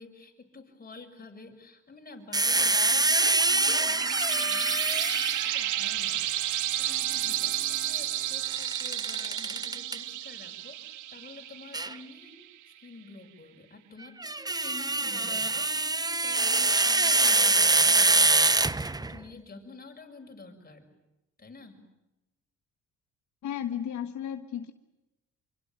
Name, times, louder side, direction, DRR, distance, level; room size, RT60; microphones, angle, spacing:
voice 1, 0.0-20.9 21.4-21.8, left 3 dB, 30° left, 4 dB, 6.5 m, -49 dB
sound 1, 2.3-5.6 8.5-10.0 11.7-11.9 14.0-19.2, right 3 dB, 15° right, 0.9 m, -24 dB
sound 2, 3.2-12.4, right 13 dB, 75° right, 1.2 m, -32 dB
voice 2, 23.4-24.7, left 9 dB, 70° left, 7 dB, 1.6 m, -34 dB
27.0 x 24.5 x 9.0 m, 0.97 s
cardioid pair, 90°, 30 cm